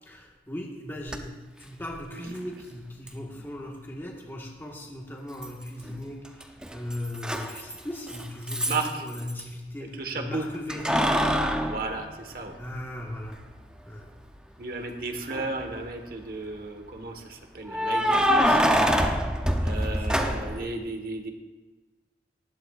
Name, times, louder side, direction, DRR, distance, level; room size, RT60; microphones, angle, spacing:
voice 1, 0.0-11.1 12.6-13.4 13.8-14.1 19.8-20.4, left 1 dB, 15° left, -2 dB, 1.8 m, -38 dB
Keys jangling, 1.1-1.2 3.1-3.2 5.4-6.0 6.2-9.4 10.7-12.8 13.3-13.4 15.2-15.7 17.7-20.7, equal, 5° right, 0.8 m, -25 dB
voice 2, 8.6-9.0 10.0-10.5 11.6-12.6 14.6-18.6 19.6-21.3, right 3 dB, 55° right, 4 dB, 1.6 m, -34 dB
19.0 x 14.5 x 2.6 m, 1.3 s
head